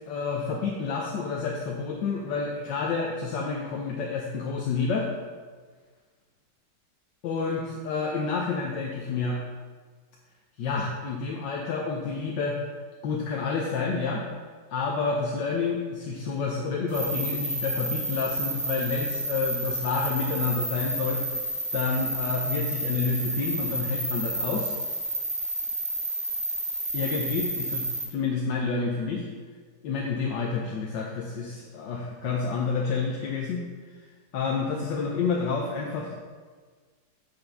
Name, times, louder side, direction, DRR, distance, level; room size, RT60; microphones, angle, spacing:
voice 1, 0.1-5.1 7.2-9.4 10.6-12.6 13.0-14.2 14.7-24.7 26.9-29.2 29.8-33.6 33.9-34.0 34.3-36.1, left 4 dB, 80° left, -1 dB, 1.5 m, -29 dB
sound 1, 16.9-28.0, right 2 dB, 20° right, 1.8 m, -30 dB
7.9 x 5.3 x 5.6 m, 1.5 s
omnidirectional pair, 1.9 m